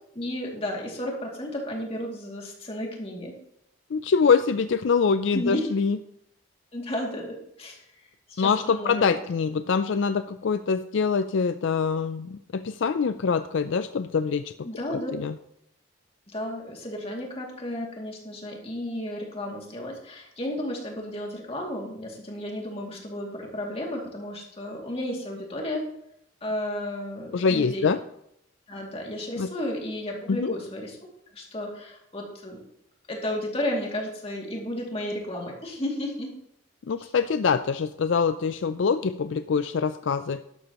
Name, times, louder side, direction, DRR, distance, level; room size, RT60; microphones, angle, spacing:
voice 1, 0.1-3.3 5.3-5.7 6.7-7.8 8.3-9.2 14.6-15.1 16.3-25.8 26.4-27.9 28.7-31.0 31.3-32.6 33.1-36.3 37.0-37.1, left 1 dB, 30° left, -1 dB, 2.5 m, -33 dB
voice 2, 3.9-6.0 8.4-15.3 27.3-28.0 29.4-29.5 30.3-30.5 36.9-40.4, left 5 dB, 70° left, 11 dB, 0.4 m, -24 dB
12.0 x 12.0 x 3.0 m, 0.75 s
head